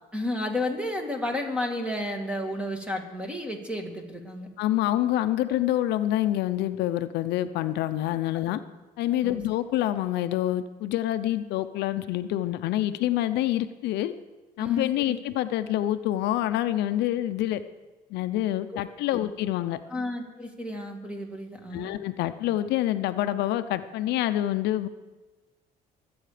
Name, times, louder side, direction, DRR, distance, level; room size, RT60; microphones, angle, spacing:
voice 1, 0.1-4.5 9.2-9.4 14.6-15.2 18.7-18.8 19.1-19.2 19.9-21.9, left 1 dB, 5° right, 3 dB, 2.4 m, -32 dB
voice 2, 4.6-8.6 9.0-14.1 14.6-17.6 18.1-19.8 21.7-24.9, left 13 dB, 85° left, 11 dB, 0.6 m, -27 dB
22.5 x 8.7 x 5.0 m, 1.2 s
cardioid pair, 110°, 17 cm